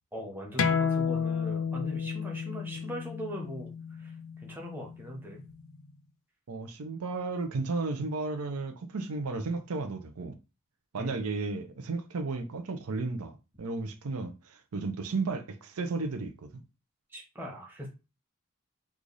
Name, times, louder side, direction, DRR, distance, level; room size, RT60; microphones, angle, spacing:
voice 1, 0.1-5.4 11.0-11.2 17.1-17.9, equal, 10° right, 0.9 m, -41 dB
sound 1, 0.6-5.8, left 6 dB, 65° left, 0.4 m, -32 dB
voice 2, 6.5-10.4 10.9-16.5, right 3 dB, 85° right, 0.6 m, -34 dB
3.2 x 2.4 x 3.9 m
head